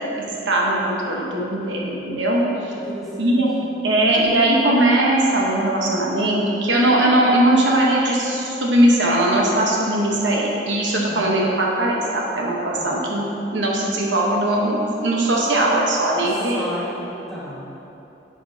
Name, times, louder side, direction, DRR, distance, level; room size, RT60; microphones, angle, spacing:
voice 1, 0.2-2.7 3.2-3.5 3.8-13.2 13.5-16.6, right 1 dB, 85° right, -3 dB, 1.0 m, -19 dB
voice 2, 2.7-3.4 11.0-11.3 12.8-13.0 16.1-17.7, equal, ahead, -9 dB, 1.2 m, -34 dB
9.9 x 5.1 x 2.8 m, 2.9 s
head